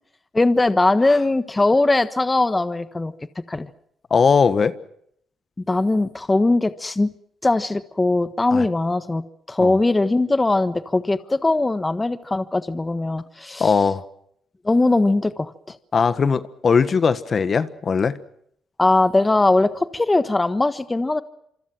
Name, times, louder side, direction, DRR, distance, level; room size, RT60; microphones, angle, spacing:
voice 1, 0.3-3.1 3.5-3.7 5.7-7.1 7.4-13.7 14.6-15.8 18.8-21.2, left 2 dB, 20° left, 1.3 m, -20 dB
voice 2, 4.1-4.7 8.5-8.6 9.6-9.8 13.6-14.0 15.9-18.2, left 5 dB, 45° left, 1.5 m, -19 dB
27.0 x 25.0 x 6.1 m
cardioid pair, 75°, 0 cm